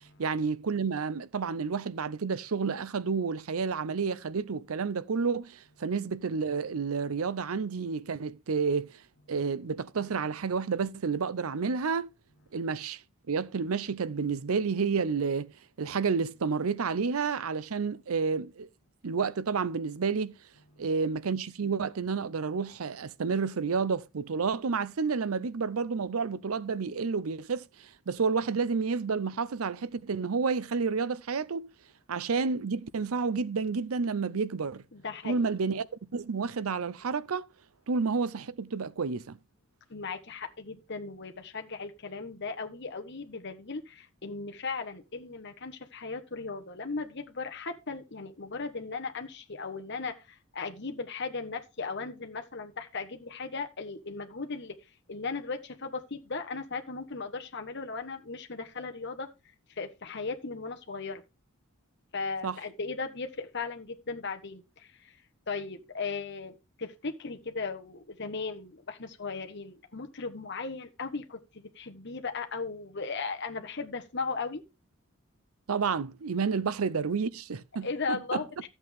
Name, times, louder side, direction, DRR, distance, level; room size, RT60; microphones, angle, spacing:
voice 1, 0.2-8.9 9.3-12.1 12.5-13.0 13.3-15.5 15.8-18.7 19.0-20.3 20.8-31.7 32.1-34.8 35.2-35.9 36.1-37.5 37.9-39.4 62.4-62.6 75.7-78.4, right 5 dB, 85° right, 0.6 m, -30 dB
voice 2, 34.9-35.5 39.9-54.8 55.1-59.3 59.8-61.2 62.1-65.1 65.5-74.6 77.8-78.7, left 4 dB, 55° left, 1.4 m, -37 dB
13.0 x 8.1 x 3.6 m
head